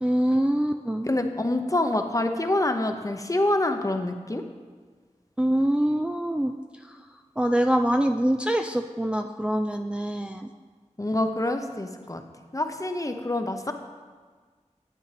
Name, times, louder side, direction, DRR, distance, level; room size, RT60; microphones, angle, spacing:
voice 1, 0.0-1.1 5.4-6.6 7.4-10.5, right 1 dB, 10° right, 5 dB, 0.4 m, -24 dB
voice 2, 1.0-4.4 11.0-12.2 12.5-13.7, left 1 dB, 25° left, 6 dB, 0.8 m, -26 dB
10.5 x 8.6 x 3.4 m, 1.5 s
wide cardioid pair, 45°, 12 cm